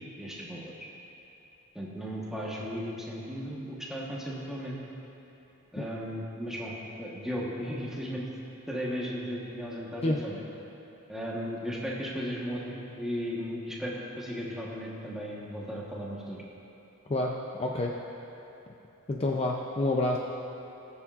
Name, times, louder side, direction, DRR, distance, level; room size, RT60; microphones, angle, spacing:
voice 1, 0.2-0.9 1.7-4.8 5.7-6.7 7.0-8.3 8.7-10.4 11.1-16.4, equal, ahead, -5 dB, 1.2 m, -36 dB
voice 2, 17.1-18.0 19.1-20.2, left 2 dB, 30° left, -1 dB, 0.5 m, -28 dB
19.5 x 7.0 x 2.5 m, 3.0 s
head